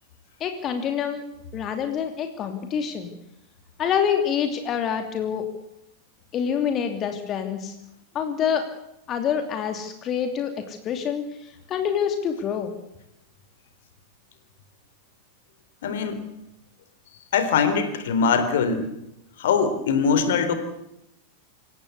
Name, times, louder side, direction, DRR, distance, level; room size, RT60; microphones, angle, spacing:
voice 1, 0.4-1.2 1.5-3.1 3.8-5.5 6.3-7.7 8.1-8.7 9.1-12.7, left 8 dB, 30° left, 6 dB, 2.8 m, -26 dB
voice 2, 15.8-16.2 17.3-18.9 19.4-20.5, left 6 dB, 55° left, 10 dB, 3.7 m, -22 dB
27.0 x 17.0 x 8.4 m, 0.84 s
figure-of-eight pair, 90°, 0 cm